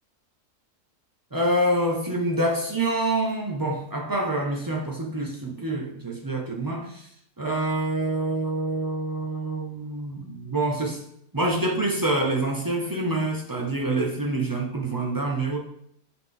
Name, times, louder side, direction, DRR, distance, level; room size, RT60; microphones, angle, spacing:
voice 1, 1.3-7.1 7.4-11.0 11.3-15.6, right 1 dB, 35° right, -1 dB, 0.3 m, -26 dB
7.8 x 3.8 x 3.8 m, 0.69 s
omnidirectional pair, 1.8 m